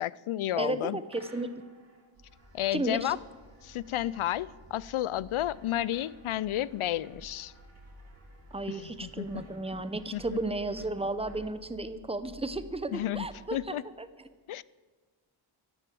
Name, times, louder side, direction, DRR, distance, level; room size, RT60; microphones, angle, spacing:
voice 1, 0.0-1.0 2.5-3.2 3.6-7.5 8.7-9.4 10.1-10.4 12.9-13.8 14.5-14.6, left 13 dB, 80° left, 0.5 m, -32 dB
voice 2, 0.6-1.5 2.7-3.1 8.5-14.1, right 2 dB, 10° right, 0.7 m, -34 dB
sound 1, 1.1-12.3, right 1 dB, 30° right, 2.4 m, -60 dB
sound 2, 2.1-13.7, equal, 90° right, 2.2 m, -53 dB
13.5 x 11.5 x 8.5 m
wide cardioid pair, 180°, 49 cm